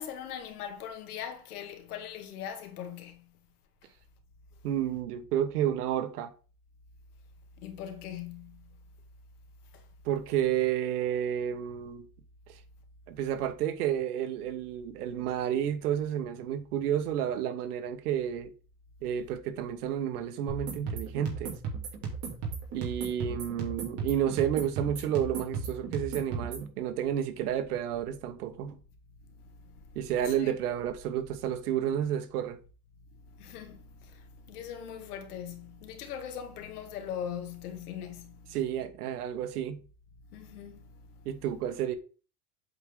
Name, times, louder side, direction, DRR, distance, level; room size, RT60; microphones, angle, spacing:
voice 1, 0.0-3.2 7.6-8.6 9.7-9.8 29.7-30.0 30.4-30.5 33.3-38.4 40.3-41.0, left 9 dB, 85° left, 2.0 m, -40 dB
voice 2, 4.6-6.3 10.0-12.0 12.5-12.6 13.1-18.5 19.0-21.6 22.7-28.8 29.9-32.6 38.5-39.8 41.2-42.0, right 10 dB, 85° right, 1.2 m, -31 dB
sound 1, 20.5-26.7, right 5 dB, 30° right, 2.6 m, -36 dB
8.0 x 4.8 x 3.8 m
supercardioid pair, 165°, 44 cm